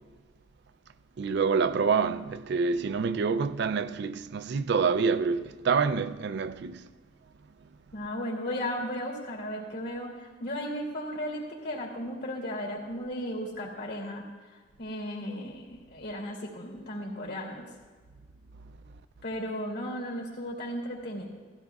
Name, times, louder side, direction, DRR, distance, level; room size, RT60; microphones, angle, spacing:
voice 1, 1.2-6.9, right 5 dB, 60° right, 0.4 m, -27 dB
voice 2, 7.9-14.2 14.8-17.7 19.2-21.3, equal, 65° left, 2.8 m, -35 dB
17.0 x 15.0 x 2.3 m
head